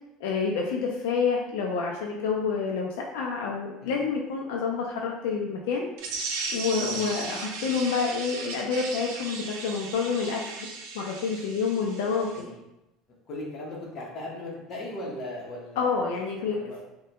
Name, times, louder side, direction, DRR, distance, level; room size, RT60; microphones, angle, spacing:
voice 1, 0.2-5.9 6.5-10.7 10.9-12.3 15.8-16.6, left 5 dB, 85° left, -1 dB, 0.4 m, -28 dB
sound 1, 6.0-12.4, right 4 dB, 75° right, 0.5 m, -36 dB
voice 2, 6.8-7.4 12.3-12.6 13.3-15.9 16.4-16.8, left 1 dB, 40° left, -3 dB, 0.9 m, -38 dB
3.2 x 2.2 x 2.8 m, 0.93 s
cardioid pair, 140°, 0 cm